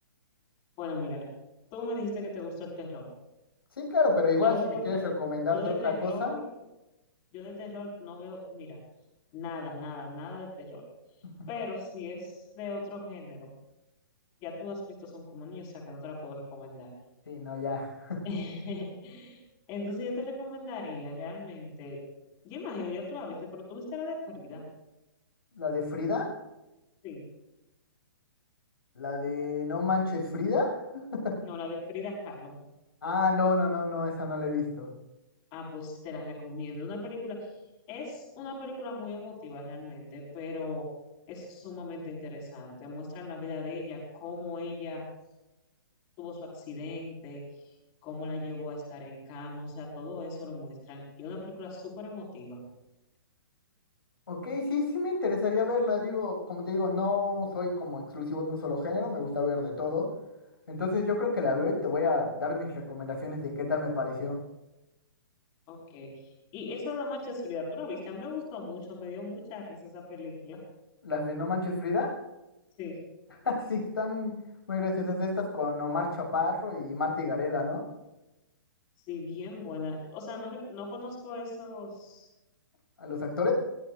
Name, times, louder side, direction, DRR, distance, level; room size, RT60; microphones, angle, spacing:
voice 1, 0.8-1.2 1.7-3.1 4.4-4.8 5.5-6.4 7.3-8.8 9.3-10.8 11.5-13.5 14.4-16.9 18.2-19.4 19.7-22.0 22.4-24.7 27.0-27.2 31.4-32.6 35.5-37.5 37.9-40.8 41.3-45.0 46.2-47.7 48.0-52.6 65.7-70.6 72.8-73.0 79.0-82.3, left 3 dB, 35° left, -2 dB, 5.3 m, -38 dB
voice 2, 3.8-6.3 17.3-18.2 25.5-26.3 28.9-30.7 31.1-31.3 33.0-34.9 54.3-60.1 60.7-64.4 71.0-72.1 73.4-74.3 74.7-77.8 83.0-83.5, left 3 dB, 85° left, 0 dB, 6.5 m, -29 dB
23.0 x 15.0 x 2.6 m, 0.95 s
hypercardioid pair, 135°, 12 cm